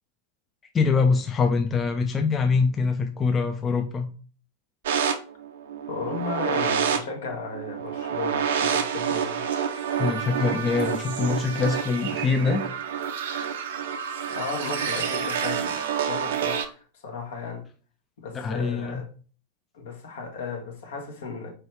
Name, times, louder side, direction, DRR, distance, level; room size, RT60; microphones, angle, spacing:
voice 1, 0.7-4.1 10.0-12.6 18.3-19.0, left 4 dB, 20° left, 0.4 m, -24 dB
sound 1, 4.8-16.6, right 7 dB, 60° right, 0.5 m, -28 dB
voice 2, 5.9-9.4 14.3-17.7 18.2-19.1 19.7-21.5, left 4 dB, 60° left, 1.0 m, -35 dB
4.6 x 3.1 x 3.1 m
figure-of-eight pair, 90°, 0 cm